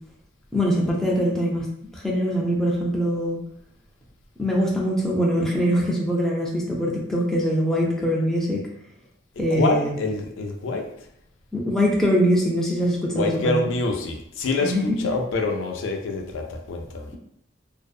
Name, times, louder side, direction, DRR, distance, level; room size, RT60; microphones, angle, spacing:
voice 1, 0.5-1.7 1.9-3.4 4.4-8.6 9.4-9.9 11.5-13.7 14.6-15.0, equal, ahead, -4 dB, 0.3 m, -23 dB
voice 2, 9.5-11.1 13.1-17.1, left 3 dB, 80° left, 3 dB, 0.4 m, -26 dB
2.6 x 2.0 x 2.3 m, 0.73 s
head